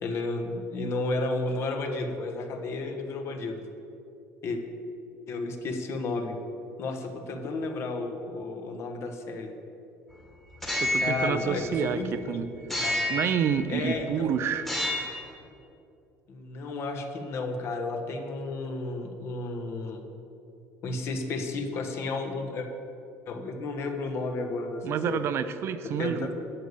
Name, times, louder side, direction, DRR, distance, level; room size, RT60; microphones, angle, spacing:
voice 1, 0.0-3.6 4.4-4.6 5.3-6.4 6.8-9.5 11.0-12.4 12.7-13.0 13.7-14.4 16.3-20.0 20.8-22.7 23.3-25.2 25.8-26.4, left 3 dB, 45° left, 5 dB, 1.2 m, -32 dB
sound 1, 10.5-12.2 12.7-14.0 14.6-15.3, left 1 dB, 5° left, 1.5 m, -30 dB
voice 2, 10.8-12.5 13.1-14.7 24.8-26.3, right 8 dB, 45° right, 11 dB, 0.5 m, -28 dB
11.5 x 6.9 x 6.7 m, 2.7 s
cardioid pair, 140°, 6 cm